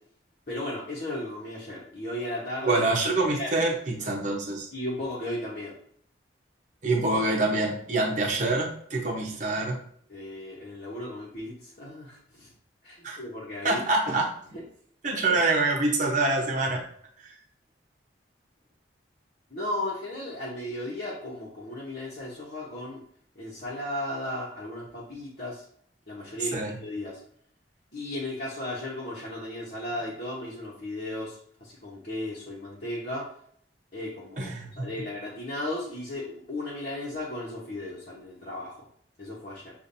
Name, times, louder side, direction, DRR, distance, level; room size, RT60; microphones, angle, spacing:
voice 1, 0.5-2.8 3.1-3.5 3.9-4.2 4.7-5.7 10.1-12.5 12.8-13.8 14.5-14.6 15.3-15.4 19.5-23.0 23.3-25.6 26.1-27.2 27.9-33.2 33.9-34.4 34.8-38.8 39.2-39.7, left 1 dB, 45° left, -6 dB, 1.1 m, -35 dB
voice 2, 2.6-4.7 6.8-9.8 13.0-13.2 13.6-14.3 15.0-16.8 17.2-17.3 26.5-26.8 34.4-34.9, right 2 dB, 45° right, -1 dB, 1.0 m, -26 dB
6.9 x 2.6 x 2.7 m, 0.62 s
head